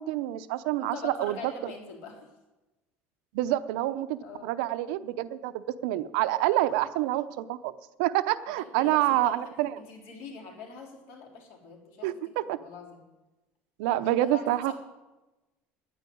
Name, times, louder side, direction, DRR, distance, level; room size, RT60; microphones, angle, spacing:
voice 1, 0.0-1.5 3.3-7.7 8.0-9.7 12.0-12.6 13.8-14.7, right 15 dB, 85° right, 12 dB, 0.7 m, -27 dB
voice 2, 0.8-2.3 4.2-4.5 8.6-9.4 9.8-12.2 12.4-13.0 13.9-14.7, left 5 dB, 60° left, 1 dB, 3.5 m, -43 dB
10.0 x 9.3 x 9.2 m, 1.1 s
cardioid pair, 175°, 5 cm